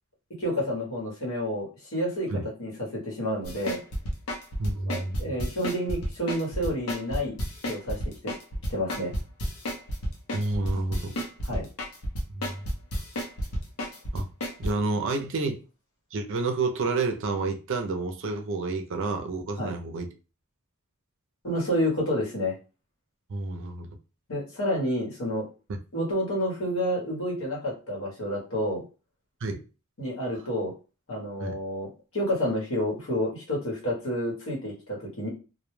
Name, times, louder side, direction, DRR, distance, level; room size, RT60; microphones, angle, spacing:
voice 1, 0.4-3.8 4.8-7.3 7.6-8.3 8.7-9.1 11.4-11.7 19.6-19.7 21.4-22.5 24.3-25.5 25.9-28.8 30.0-30.7 31.1-35.3, equal, 70° left, 1.1 m, -29 dB
sound 1, 3.4-14.7, equal, 90° left, 0.7 m, -30 dB
voice 2, 4.6-5.2 10.3-11.2 12.3-12.7 14.1-14.3 14.6-15.6 16.1-20.1 23.3-23.9 29.4-29.6 31.4-31.6, right 3 dB, 60° right, 0.4 m, -29 dB
2.1 x 2.1 x 3.1 m
head